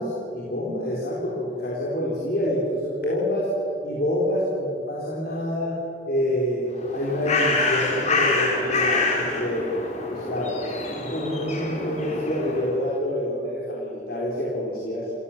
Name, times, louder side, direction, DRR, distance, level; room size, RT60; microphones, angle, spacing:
voice 1, 0.0-3.5 3.8-5.7 6.1-9.7 10.1-10.6 11.0-15.1, left 1 dB, 55° left, -5 dB, 4.0 m, -27 dB
Bird, 6.7-12.8, left 3 dB, 40° left, 3.8 m, -26 dB
27.5 x 15.5 x 7.3 m, 2.7 s
head